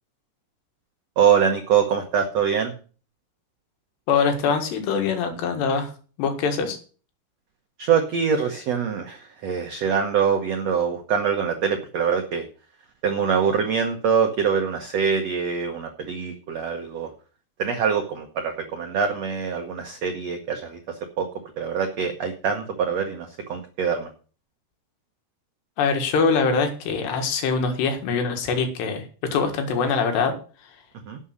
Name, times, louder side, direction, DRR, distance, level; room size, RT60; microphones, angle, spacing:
voice 1, 1.2-2.7 7.8-12.5 13.0-17.1 17.6-21.3 21.6-24.1 31.1-31.2, right 7 dB, 75° right, 4 dB, 1.5 m, -24 dB
voice 2, 4.1-5.9 6.2-6.8 25.8-29.0 29.3-30.3, left 5 dB, 85° left, 6 dB, 3.9 m, -23 dB
11.5 x 7.3 x 6.5 m, 0.39 s
omnidirectional pair, 4.8 m